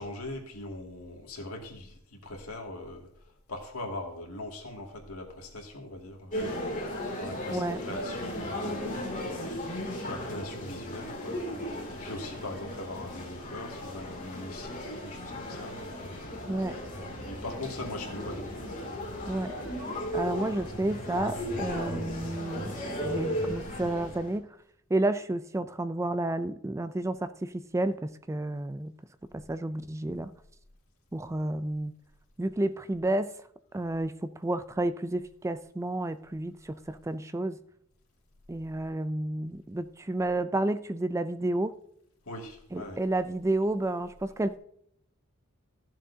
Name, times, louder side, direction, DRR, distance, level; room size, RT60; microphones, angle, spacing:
voice 1, 0.0-3.1 3.5-6.5 7.1-8.9 10.0-16.0 17.2-18.8 20.2-20.6 42.2-43.0, left 1 dB, 85° left, 2.4 m, -41 dB
sound 1, 6.3-24.3, left 1 dB, 40° left, 2.7 m, -36 dB
voice 2, 20.1-22.7 23.0-24.5 24.9-28.9 29.3-30.3 31.1-31.9 32.4-33.3 33.7-37.6 38.5-41.8 42.7-44.6, right 2 dB, 15° right, 0.4 m, -31 dB
14.5 x 7.3 x 2.8 m
head